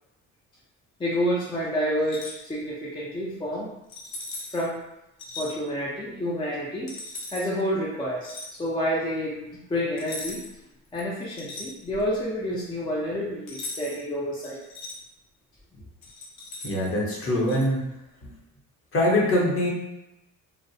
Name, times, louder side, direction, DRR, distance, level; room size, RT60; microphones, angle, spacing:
voice 1, 1.0-3.7 4.5-4.8 5.4-6.9 7.3-10.4 10.9-14.6, equal, 15° left, -6 dB, 0.4 m, -29 dB
sound 1, 2.0-2.4 3.9-4.7 5.2-5.5 6.9-7.5 8.2-8.5 10.0-10.6 10.9-12.1 13.5-14.0 14.4-15.0 16.0-16.9 17.5-17.7, left 2 dB, 70° left, 0.7 m, -38 dB
voice 2, 16.6-17.8 18.2-18.3 18.9-19.7, left 1 dB, 40° left, -4 dB, 0.8 m, -23 dB
2.4 x 2.1 x 2.6 m, 0.88 s
cardioid pair, 115°, 34 cm